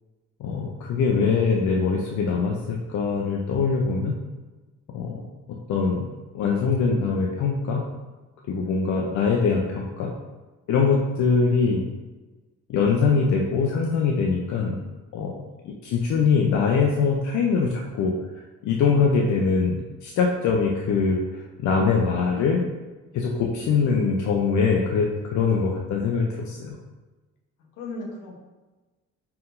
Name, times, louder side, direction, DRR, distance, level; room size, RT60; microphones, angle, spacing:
voice 1, 0.4-4.1 4.9-5.2 5.7-6.1 6.3-7.8 8.5-10.1 10.7-11.9 12.7-14.8 15.1-15.3 15.6-18.1 18.6-22.6 23.1-26.8, left 5 dB, 70° left, -1 dB, 0.6 m, -23 dB
voice 2, 23.1-23.7 27.7-28.4, left 2 dB, 85° left, -1 dB, 1.0 m, -38 dB
4.5 x 3.6 x 2.6 m, 1.2 s
cardioid pair, 90°, 30 cm